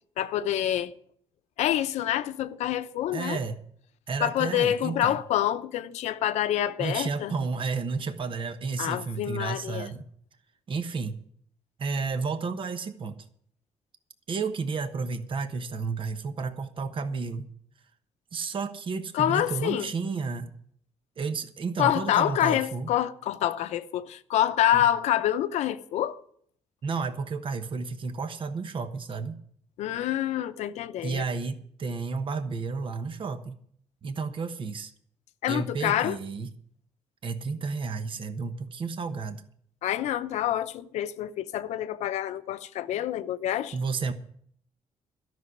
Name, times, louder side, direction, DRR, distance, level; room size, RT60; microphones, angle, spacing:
voice 1, 0.2-0.9 1.6-3.4 4.2-7.3 8.8-9.9 19.1-19.9 21.8-26.2 29.8-31.2 35.4-36.2 39.8-43.8, left 12 dB, 90° left, 0.7 m, -27 dB
voice 2, 3.1-3.6 4.1-5.2 6.8-10.0 10.7-11.2 11.8-13.2 14.3-17.5 18.3-20.5 21.2-22.9 24.7-24.8 26.8-29.4 31.0-33.6 34.0-34.9 35.5-36.5 37.2-39.4 43.7-44.1, right 4 dB, 50° right, 1.2 m, -32 dB
12.5 x 6.3 x 9.7 m
cardioid pair, 95°, 11 cm